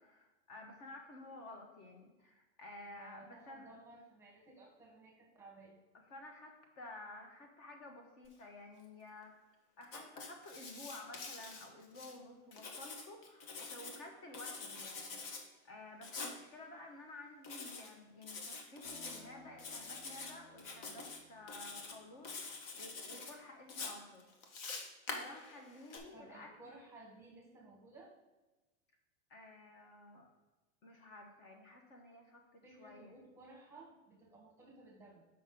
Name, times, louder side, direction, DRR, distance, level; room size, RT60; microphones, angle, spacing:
voice 1, 0.0-3.7 6.1-9.3 9.8-24.3 25.1-26.5 29.3-30.3 30.8-33.2, left 2 dB, 40° left, 2 dB, 1.3 m, -53 dB
voice 2, 3.0-5.8 26.1-28.1 32.6-35.3, right 2 dB, 5° right, -2 dB, 1.2 m, -57 dB
Writing, 9.8-12.1 12.5-14.0 14.3-15.4 16.0-16.4 17.4-17.9 18.2-19.2 19.6-20.3 20.6-21.2 21.5-21.9 22.2-23.3 23.7-26.0, left 4 dB, 55° left, 1.4 m, -46 dB
sound 1, 18.8-23.1, left 2 dB, 20° left, 0.7 m, -61 dB
7.4 x 5.7 x 3.8 m, 1.1 s
supercardioid pair, 160°, 35 cm